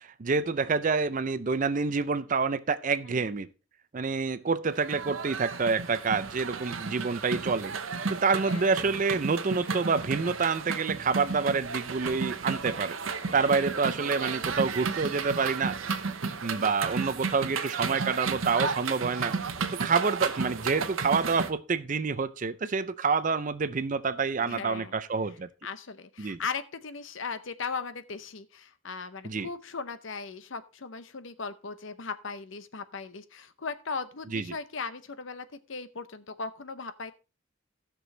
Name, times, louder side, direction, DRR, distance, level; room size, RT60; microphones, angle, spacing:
voice 1, 0.0-3.5 3.9-7.7 8.1-13.0 13.3-15.8 16.4-19.3 19.7-25.5 26.2-26.4 29.2-29.5 34.3-34.4, right 4 dB, 35° right, 0.5 m, -27 dB
sound 1, 4.7-21.5, right 4 dB, 70° right, 0.9 m, -33 dB
voice 2, 24.4-25.0 25.6-37.1, left 5 dB, 65° left, 0.7 m, -38 dB
16.0 x 6.2 x 3.2 m
head